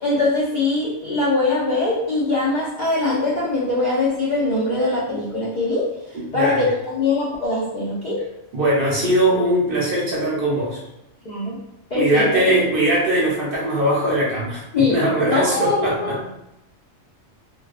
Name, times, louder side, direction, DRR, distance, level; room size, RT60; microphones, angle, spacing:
voice 1, 0.0-5.9 6.3-8.2 11.3-11.6 11.9-12.4 14.7-16.3, left 2 dB, 70° left, -6 dB, 0.4 m, -22 dB
voice 2, 8.5-10.8 11.9-16.2, right 1 dB, 55° right, -5 dB, 0.8 m, -20 dB
2.4 x 2.2 x 2.4 m, 0.85 s
omnidirectional pair, 1.3 m